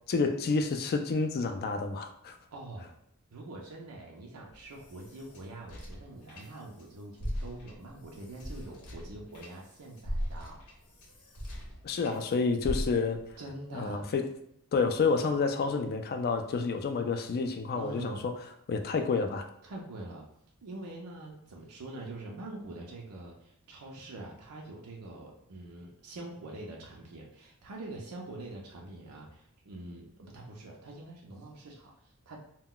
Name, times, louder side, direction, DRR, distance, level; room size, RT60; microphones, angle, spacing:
voice 1, 0.1-2.4 11.8-13.2 13.7-14.3 14.7-18.3 18.7-19.5, left 4 dB, 45° left, 6 dB, 0.3 m, -29 dB
voice 2, 2.5-2.9 3.3-10.6 13.4-14.1 17.7-18.3 19.6-20.3 20.6-32.5, right 2 dB, 85° right, -1 dB, 0.5 m, -44 dB
sound 1, 4.5-6.8 7.1-12.2 12.6-13.3, equal, 80° left, 0.7 m, -39 dB
2.2 x 2.2 x 3.7 m, 0.72 s
head